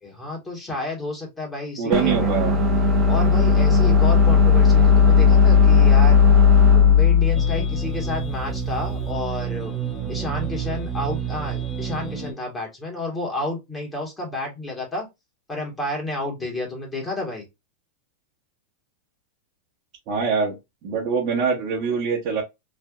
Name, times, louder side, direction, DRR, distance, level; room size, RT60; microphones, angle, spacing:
voice 1, 0.0-2.3 3.1-6.2 6.7-9.7 10.1-15.0 15.5-17.4, left 2 dB, 15° left, 1.5 m, -30 dB
voice 2, 1.8-2.6 20.1-22.4, right 5 dB, 50° right, 1.1 m, -24 dB
sound 1, 1.9-9.0, left 5 dB, 30° right, 0.8 m, -16 dB
sound 2, 7.3-12.3, right 9 dB, ahead, 1.1 m, -29 dB
3.3 x 2.5 x 2.4 m
hypercardioid pair, 110°, 0 cm